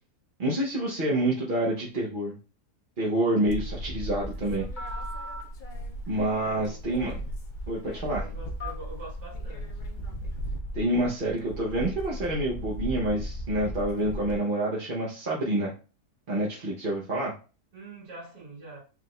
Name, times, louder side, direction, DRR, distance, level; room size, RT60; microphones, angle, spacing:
voice 1, 0.4-2.4 3.0-4.7 6.1-7.2 7.7-8.3 10.7-15.7 16.3-17.3, right 1 dB, 40° right, 0.8 m, -27 dB
sound 1, 3.5-6.3 6.6-14.4, equal, 75° left, 0.4 m, -37 dB
Telephone, 4.2-10.6, equal, 30° left, 1.3 m, -41 dB
voice 2, 6.4-6.8 8.2-9.7 17.7-18.8, right 3 dB, 85° right, 2.2 m, -44 dB
4.8 x 2.5 x 3.1 m
omnidirectional pair, 1.7 m